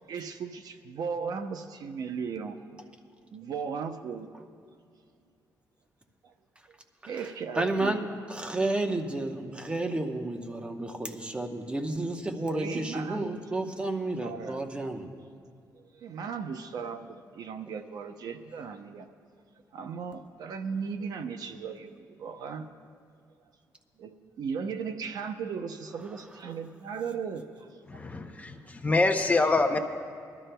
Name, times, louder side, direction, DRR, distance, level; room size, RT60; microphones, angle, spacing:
voice 1, 0.1-2.6 3.3-4.4 6.2-6.3 7.0-7.9 12.5-13.4 14.2-14.6 15.9-19.1 19.7-22.7 24.0-28.0, right 6 dB, 65° right, 8 dB, 0.7 m, -37 dB
voice 2, 7.5-15.1, right 2 dB, 15° right, 4 dB, 0.9 m, -31 dB
voice 3, 27.9-28.5 28.8-29.8, left 3 dB, 20° left, 6 dB, 0.6 m, -25 dB
23.0 x 12.5 x 2.2 m, 2.3 s
cardioid pair, 125°, 7 cm